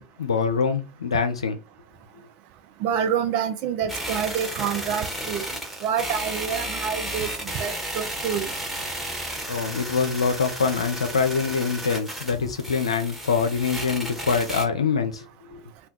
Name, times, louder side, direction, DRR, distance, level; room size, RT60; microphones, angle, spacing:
voice 1, 0.0-1.6 9.5-15.6, left 5 dB, 80° left, 0.5 m, -25 dB
voice 2, 2.8-5.4 5.8-8.5, right 8 dB, 50° right, 0.5 m, -27 dB
sound 1, 3.9-14.6, right 1 dB, 5° right, 1.1 m, -33 dB
2.4 x 2.2 x 3.5 m
figure-of-eight pair, 75°, 3 cm